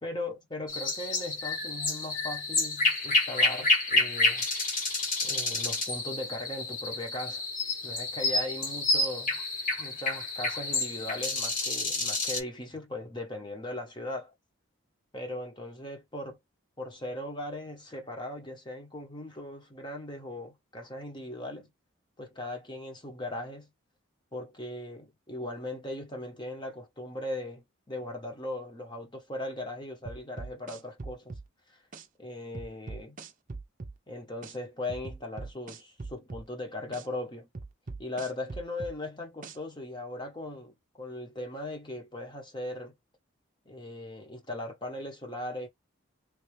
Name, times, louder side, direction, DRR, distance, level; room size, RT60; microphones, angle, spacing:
voice 1, 0.0-4.5 5.2-7.4 7.8-9.4 9.8-14.3 15.1-16.4 16.8-21.7 22.2-23.7 24.3-31.3 32.2-33.2 34.1-37.5 38.0-42.9 43.7-45.7, left 1 dB, 20° left, 1.0 m, -38 dB
sound 1, 0.7-12.4, left 2 dB, 40° left, 1.3 m, -29 dB
sound 2, 30.1-31.5 31.9-32.1 32.6-34.0 34.4-34.6 34.9-36.5 36.9-37.1 37.6-39.0 39.4-39.6, right 3 dB, 40° right, 0.6 m, -41 dB
3.3 x 2.8 x 3.1 m
head